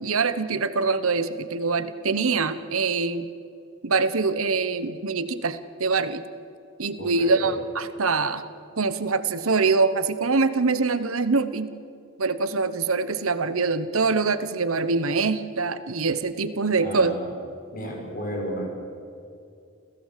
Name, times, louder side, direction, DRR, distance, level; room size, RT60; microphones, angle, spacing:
voice 1, 0.0-3.3 3.8-6.2 6.8-8.4 8.8-11.7 12.2-17.2, right 4 dB, 80° right, 12 dB, 1.1 m, -24 dB
voice 2, 7.0-7.5 16.7-17.2 17.7-18.7, equal, 40° left, 0 dB, 5.9 m, -33 dB
28.5 x 16.0 x 7.6 m, 2.5 s
head